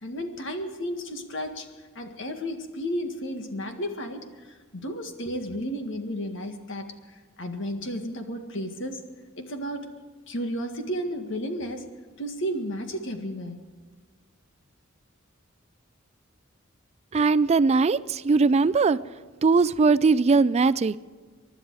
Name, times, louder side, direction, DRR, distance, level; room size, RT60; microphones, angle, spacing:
voice 1, 0.0-1.7 2.0-9.0 9.4-9.9 10.3-11.9 12.2-13.6, equal, 65° left, 5 dB, 1.8 m, -33 dB
voice 2, 17.1-19.0 19.4-21.0, right 4 dB, 30° right, 15 dB, 0.4 m, -20 dB
24.5 x 11.5 x 4.8 m, 1.5 s
head